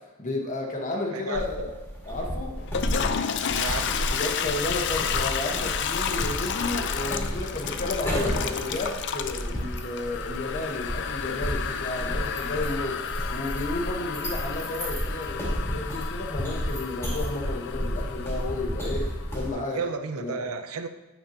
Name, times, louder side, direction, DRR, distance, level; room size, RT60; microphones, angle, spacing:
voice 1, 0.2-1.7 2.1-2.5 4.1-19.8 20.2-20.4, left 2 dB, 35° left, 0 dB, 1.1 m, -32 dB
voice 2, 1.1-1.4 3.6-4.2 19.5-20.9, right 4 dB, 75° right, 8 dB, 0.5 m, -33 dB
sound 1, 1.3-19.5, equal, 10° left, 1.7 m, -32 dB
Toilet flush, 2.6-19.3, left 7 dB, 50° left, 0.4 m, -32 dB
9.1 x 7.0 x 2.8 m, 1.1 s
head